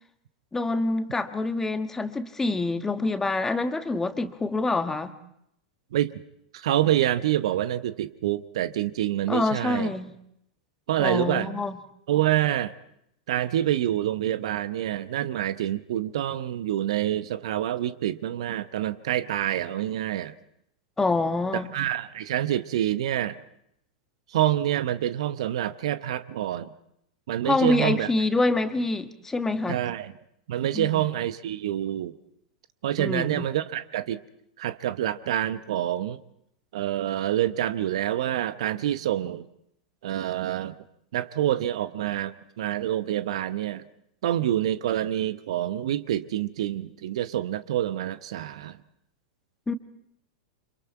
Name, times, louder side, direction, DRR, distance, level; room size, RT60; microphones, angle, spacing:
voice 1, 0.5-5.2 9.3-10.2 11.0-11.8 21.0-21.7 27.4-29.8 30.7-31.1 33.0-33.5 49.7-49.8, left 2 dB, 10° left, 9 dB, 1.4 m, -26 dB
voice 2, 6.5-9.9 10.9-11.5 12.1-12.7 13.3-20.3 21.7-23.4 24.3-26.7 27.3-28.1 29.7-30.1 30.5-32.2 32.8-34.2 34.6-36.2 36.7-39.5 40.0-40.7 41.1-43.8 44.2-48.8, right 12 dB, 60° right, 14 dB, 0.8 m, -27 dB
29.0 x 26.5 x 4.6 m, 0.75 s
figure-of-eight pair, 95°, 4 cm